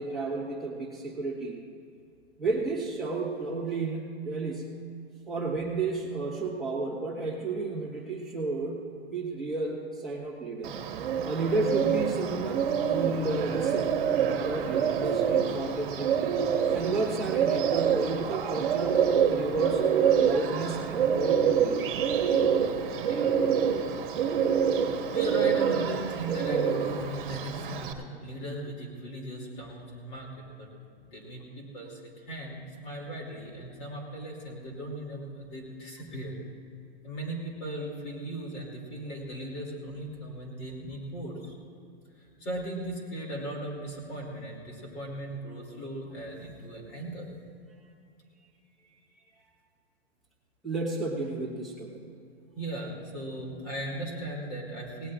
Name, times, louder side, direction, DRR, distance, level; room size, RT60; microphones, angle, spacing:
voice 1, 0.0-1.6 2.4-4.8 5.3-10.7 11.2-14.1 14.4-16.3 16.7-21.9 22.9-23.0 50.6-52.0, right 3 dB, ahead, -4 dB, 1.5 m, -32 dB
Bird, 10.6-27.9, right 7 dB, 55° right, 1.3 m, -26 dB
voice 2, 23.0-23.4 25.1-30.3 30.6-30.7 31.1-36.3 37.0-41.5 42.2-47.3 52.5-55.1, right 1 dB, 25° left, -1 dB, 2.8 m, -37 dB
18.5 x 17.0 x 2.5 m, 2.4 s
hypercardioid pair, 180°, 31 cm